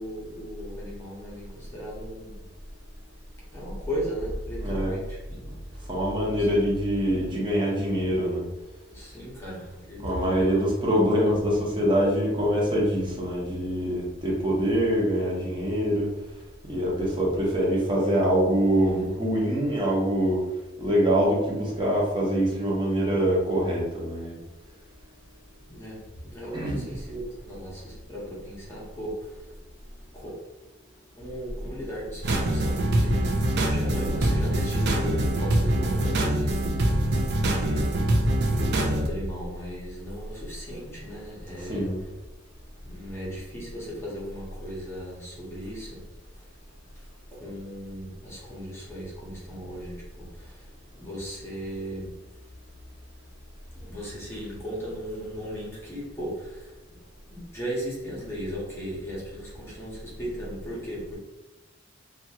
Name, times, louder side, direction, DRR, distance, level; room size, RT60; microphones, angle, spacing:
voice 1, 0.0-2.5 3.5-5.9 6.2-6.7 7.2-7.4 8.9-10.6 25.7-29.6 30.1-30.3 31.2-37.1 37.4-38.0 38.5-42.1 42.8-46.0 46.3-46.4 46.9-52.2 53.7-56.8 57.3-61.2, equal, 15° left, -6 dB, 0.9 m, -36 dB
voice 2, 4.6-5.0 5.4-5.5 5.9-8.4 10.0-16.1 16.7-20.4 20.8-24.4 26.5-26.8 41.7-42.0, equal, 25° right, -4 dB, 0.9 m, -24 dB
sound 1, 32.2-39.1, right 1 dB, 60° right, 0.4 m, -24 dB
2.8 x 2.4 x 2.8 m, 1.1 s
head